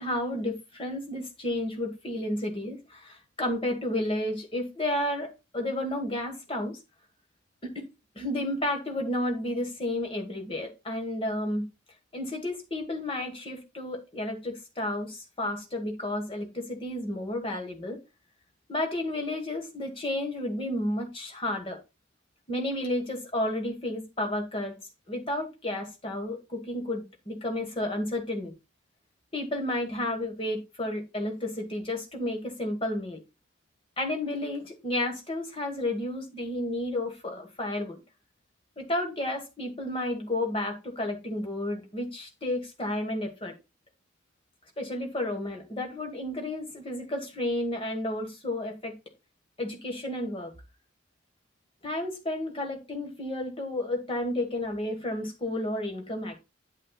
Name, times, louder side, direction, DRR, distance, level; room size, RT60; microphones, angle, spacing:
voice 1, 0.0-6.8 7.6-7.9 8.1-11.7 12.1-18.0 18.7-21.8 22.5-24.7 25.1-28.5 29.3-33.2 34.0-38.0 38.8-43.5 44.8-48.9 49.6-50.5 51.8-56.4, left 1 dB, 25° left, 1.5 m, -32 dB
8.6 x 7.4 x 2.3 m
head